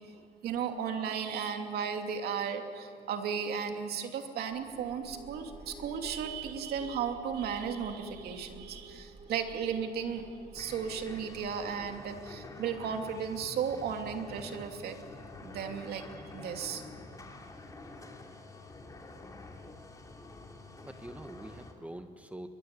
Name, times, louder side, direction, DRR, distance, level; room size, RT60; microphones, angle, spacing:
voice 1, 0.4-15.0 15.4-16.0 16.3-16.8, right 7 dB, 70° right, 4 dB, 2.8 m, -35 dB
sound 1, 4.5-12.3, right 2 dB, 40° right, 3.1 m, -51 dB
sound 2, 10.6-21.7, left 3 dB, 20° left, 3.2 m, -48 dB
voice 2, 20.8-22.5, right 1 dB, 10° right, 7 dB, 1.3 m, -45 dB
23.5 x 22.5 x 9.6 m, 2.3 s
cardioid pair, 110°, 17 cm